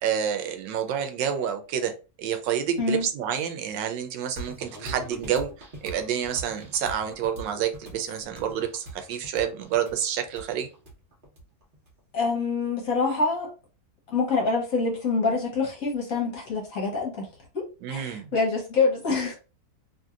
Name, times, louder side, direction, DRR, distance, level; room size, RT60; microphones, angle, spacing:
voice 1, 0.0-10.7 17.8-18.3, right 9 dB, 85° right, 1.3 m, -29 dB
sound 1, 4.4-11.9, right 1 dB, 35° right, 0.9 m, -42 dB
voice 2, 12.1-13.5 14.1-17.3 17.5-17.6 17.9-19.3, left 4 dB, 55° left, 1.2 m, -26 dB
3.1 x 2.7 x 2.3 m
omnidirectional pair, 1.9 m